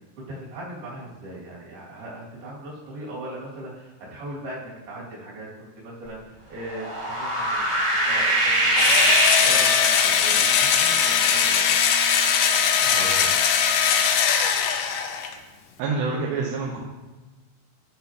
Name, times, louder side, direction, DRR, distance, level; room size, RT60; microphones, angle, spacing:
voice 1, 0.2-5.5 5.8-11.8, right 1 dB, 70° right, -6 dB, 4.3 m, -39 dB
sound 1, 6.6-10.4, right 1 dB, 30° right, 1.1 m, -23 dB
Engine / Drill, 8.8-15.3, left 7 dB, 80° left, 2.4 m, -20 dB
voice 2, 12.8-13.4 15.8-16.9, right 4 dB, 90° right, -3 dB, 3.2 m, -28 dB
13.5 x 5.8 x 2.9 m, 1.2 s
omnidirectional pair, 4.8 m